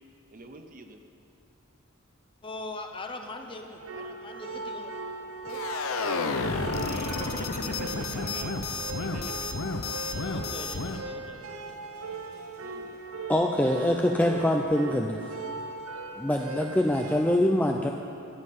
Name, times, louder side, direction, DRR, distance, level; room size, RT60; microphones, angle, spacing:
voice 1, 0.3-1.0 6.8-8.6 8.9-9.5 12.6-13.0, right 3 dB, 40° right, 6 dB, 0.7 m, -45 dB
voice 2, 2.4-4.9 5.4-5.6 9.0-9.4 10.1-11.5, left 2 dB, 25° left, 5 dB, 0.8 m, -41 dB
sound 1, 3.8-17.4, right 3 dB, 90° right, 0.8 m, -39 dB
sound 2, 5.5-11.0, left 3 dB, 80° left, 0.8 m, -31 dB
voice 3, 13.3-15.2 16.2-17.9, left 1 dB, 5° left, 2 dB, 0.4 m, -24 dB
13.5 x 5.6 x 9.3 m, 2.9 s
head